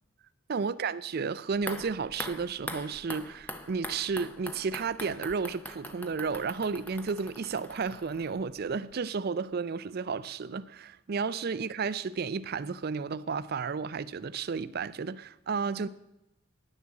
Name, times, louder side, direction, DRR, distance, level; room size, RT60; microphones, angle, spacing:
voice 1, 0.5-15.9, right 5 dB, 45° right, 16 dB, 0.4 m, -32 dB
sound 1, 1.5-8.6 8.9-9.0, left 1 dB, 10° left, 0.6 m, -43 dB
10.0 x 7.0 x 7.5 m, 0.91 s
head